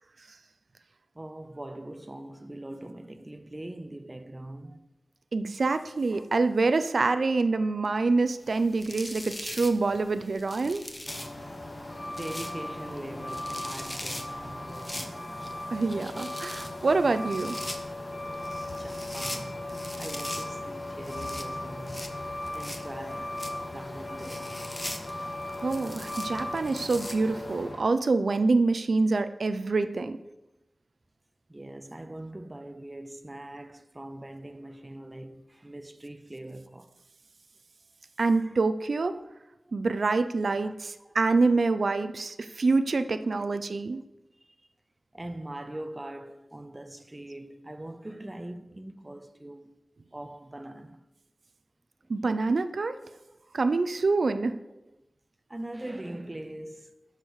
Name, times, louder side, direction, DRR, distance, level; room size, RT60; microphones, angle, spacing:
voice 1, 1.1-4.9 6.1-6.3 7.1-7.3 12.0-15.0 18.7-22.2 22.5-24.6 28.3-28.4 29.7-29.8 30.3-30.4 31.5-37.0 38.4-38.6 39.1-39.3 40.6-40.7 41.0-41.2 41.9-42.1 43.2-43.3 43.9-44.0 44.4-44.6 45.1-49.8 50.1-51.0 53.3-53.4 54.7-54.8 55.5-57.1, right 1 dB, 25° right, 0.7 m, -42 dB
voice 2, 5.3-10.9 15.7-17.6 25.6-30.2 38.2-39.2 39.7-44.0 52.1-53.0 53.5-54.6, right 3 dB, 70° right, 0.6 m, -26 dB
sound 1, 8.4-27.6, left 1 dB, 20° left, 1.1 m, -42 dB
Truck, 11.1-27.8, left 1 dB, 40° left, 1.8 m, -37 dB
12.0 x 5.0 x 6.4 m
wide cardioid pair, 85°, 0 cm